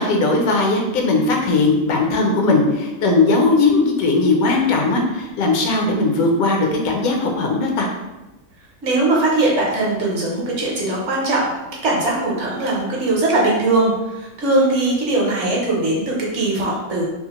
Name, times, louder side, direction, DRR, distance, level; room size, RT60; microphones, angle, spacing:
voice 1, 0.0-7.9, left 3 dB, 85° left, 1 dB, 1.1 m, -18 dB
voice 2, 8.8-11.5 11.8-17.0, right 2 dB, 60° right, -3 dB, 1.0 m, -20 dB
2.7 x 2.4 x 2.9 m, 1.1 s
omnidirectional pair, 1.5 m